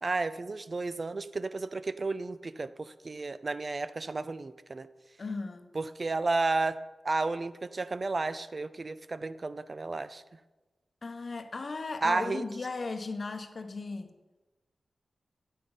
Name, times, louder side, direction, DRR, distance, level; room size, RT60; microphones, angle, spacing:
voice 1, 0.0-4.9 5.7-6.8 7.0-10.2 12.0-12.4, right 3 dB, 40° right, 14 dB, 0.4 m, -32 dB
voice 2, 5.2-5.7 11.0-14.1, left 3 dB, 50° left, 8 dB, 0.9 m, -36 dB
9.0 x 8.3 x 5.4 m, 1.2 s
wide cardioid pair, 75°, 0 cm